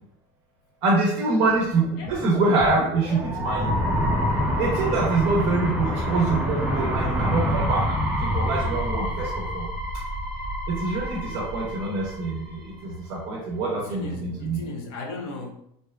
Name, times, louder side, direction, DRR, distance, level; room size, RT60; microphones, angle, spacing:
voice 1, 0.8-3.8 4.6-9.7 10.7-14.6, right 3 dB, 50° right, -3 dB, 0.6 m, -25 dB
sound 1, 1.8-12.7, equal, 5° right, 0.5 m, -27 dB
voice 2, 13.7-15.5, left 2 dB, 75° left, 2 dB, 0.6 m, -35 dB
2.7 x 2.2 x 2.2 m, 0.73 s
cardioid pair, 160°, 14 cm